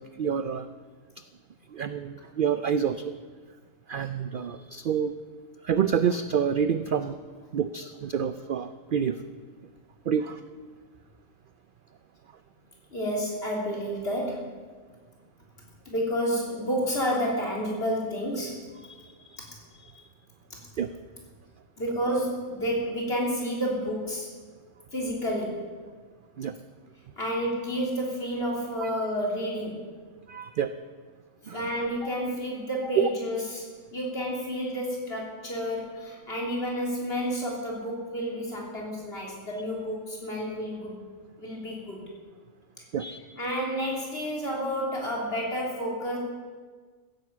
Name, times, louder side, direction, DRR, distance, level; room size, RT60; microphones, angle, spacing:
voice 1, 0.2-0.7 1.7-3.1 3.9-5.1 5.6-7.2 7.5-9.2 10.1-10.4 18.9-19.4 19.8-20.0 20.8-20.9 26.4-26.5 28.8-28.9 30.3-30.7 31.5-31.6 33.0-33.1 42.9-43.2, right 7 dB, 65° right, 11 dB, 0.5 m, -28 dB
voice 2, 12.9-14.4 15.9-18.6 19.4-19.5 20.5-20.6 21.8-24.3 24.9-25.7 27.2-29.9 31.5-41.0 41.4-42.1 43.4-46.2, equal, 45° left, -2 dB, 3.6 m, -30 dB
15.5 x 9.5 x 7.3 m, 1.5 s
omnidirectional pair, 1.4 m